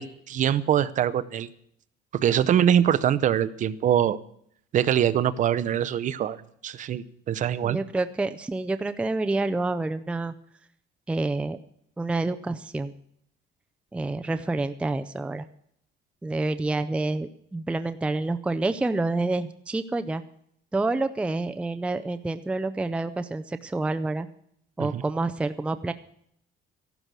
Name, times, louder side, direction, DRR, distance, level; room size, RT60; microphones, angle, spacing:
voice 1, 0.0-1.5 2.1-4.2 4.7-6.4 6.6-7.8 24.8-25.0, right 10 dB, 45° right, 15 dB, 0.7 m, -23 dB
voice 2, 7.6-10.3 11.1-11.6 12.0-12.9 13.9-15.5 16.2-20.2 20.7-24.3 24.8-25.9, right 2 dB, 5° right, 10 dB, 0.5 m, -28 dB
14.5 x 12.0 x 6.2 m, 0.69 s
cardioid pair, 165°, 19 cm